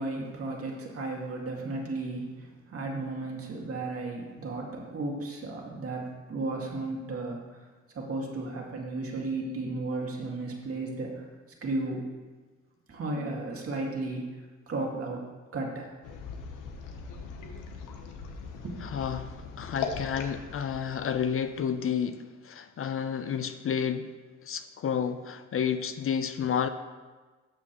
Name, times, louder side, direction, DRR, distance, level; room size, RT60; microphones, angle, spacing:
voice 1, 0.0-7.4 7.9-11.3 11.6-12.1 12.9-14.2 14.7-15.2 15.5-15.9 18.6-18.8, right 2 dB, 50° right, -1 dB, 2.1 m, -34 dB
sound 1, 16.0-21.8, left 5 dB, 85° left, 1.0 m, -40 dB
voice 2, 18.8-24.1 24.4-26.7, left 7 dB, 45° left, 10 dB, 0.5 m, -31 dB
12.0 x 7.2 x 3.0 m, 1.3 s
cardioid pair, 90°, 30 cm